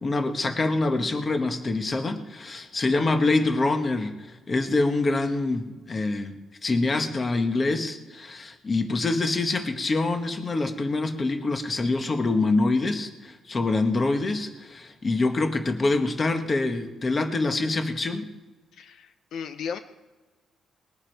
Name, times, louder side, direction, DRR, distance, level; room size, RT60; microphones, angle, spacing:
voice 1, 0.0-6.3 6.6-18.3, left 3 dB, 25° left, 7 dB, 1.2 m, -25 dB
voice 2, 18.8-19.8, left 6 dB, 70° left, 10 dB, 0.6 m, -35 dB
20.5 x 10.5 x 4.6 m, 1.2 s
cardioid pair, 150°, 0 cm